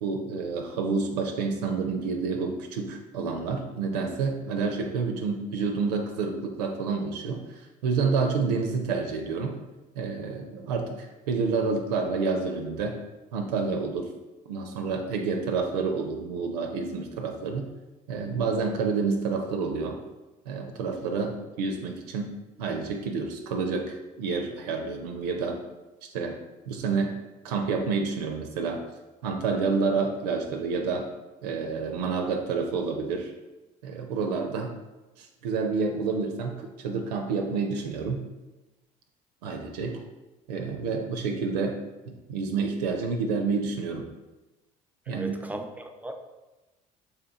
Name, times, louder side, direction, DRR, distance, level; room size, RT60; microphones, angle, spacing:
voice 1, 0.0-9.5 10.0-13.0 13.3-14.1 14.5-17.7 18.1-20.0 20.5-22.3 22.6-25.6 26.1-26.4 26.7-27.2 27.4-28.8 29.2-31.1 31.4-33.3 33.8-34.7 35.2-38.2 39.4-40.0 40.5-41.8 42.1-44.1 45.1-45.4, right 4 dB, 80° right, 3 dB, 0.4 m, -29 dB
voice 2, 45.1-46.1, right 1 dB, 10° right, 5 dB, 0.4 m, -37 dB
3.3 x 2.9 x 3.5 m, 1.1 s
hypercardioid pair, 60°, 20 cm